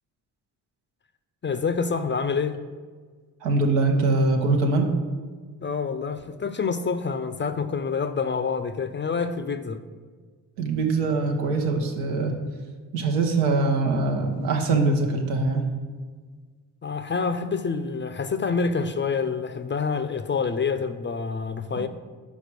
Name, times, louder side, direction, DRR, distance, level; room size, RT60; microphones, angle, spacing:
voice 1, 1.4-2.6 5.6-9.8 16.8-21.9, left 5 dB, 25° left, 10 dB, 0.4 m, -27 dB
voice 2, 3.4-4.9 10.6-12.3 12.9-15.7, right 3 dB, 85° right, 2 dB, 1.0 m, -23 dB
5.2 x 4.8 x 6.2 m, 1.5 s
hypercardioid pair, 40°, 48 cm